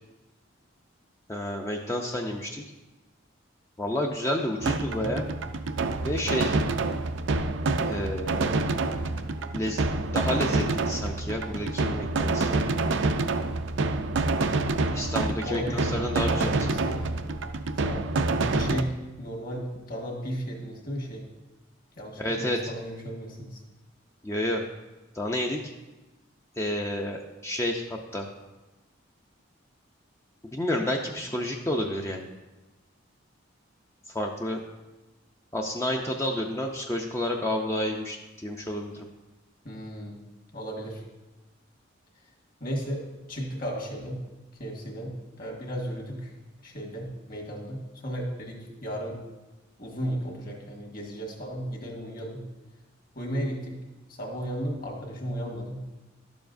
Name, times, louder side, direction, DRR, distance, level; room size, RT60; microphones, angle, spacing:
voice 1, 1.3-2.6 3.8-5.3 6.0-6.6 7.9-8.6 9.5-9.8 10.1-12.6 14.9-16.5 22.2-22.7 24.2-24.6 25.1-25.6 26.6-28.3 30.5-32.3 34.1-34.6 35.5-39.1, left 1 dB, 15° left, 1 dB, 0.4 m, -30 dB
sound 1, 4.6-18.8, right 3 dB, 65° right, 0.4 m, -27 dB
voice 2, 15.4-17.0 17.8-21.3 22.0-23.6 39.6-40.2 40.5-41.0 42.6-44.2 44.6-46.3 46.6-49.2 49.8-52.4 53.1-53.8 54.1-55.8, equal, 45° left, 0 dB, 1.6 m, -35 dB
11.5 x 7.0 x 2.5 m, 1.1 s
head